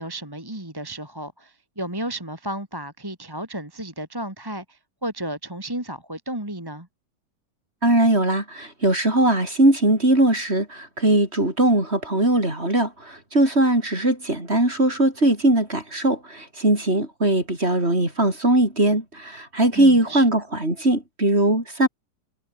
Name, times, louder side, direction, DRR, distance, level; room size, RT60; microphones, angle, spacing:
voice 1, 0.0-6.9 19.7-20.2, right 1 dB, 10° right, 3.1 m, -33 dB
voice 2, 7.8-21.9, right 1 dB, 35° right, 6.8 m, -20 dB
omnidirectional pair, 1.9 m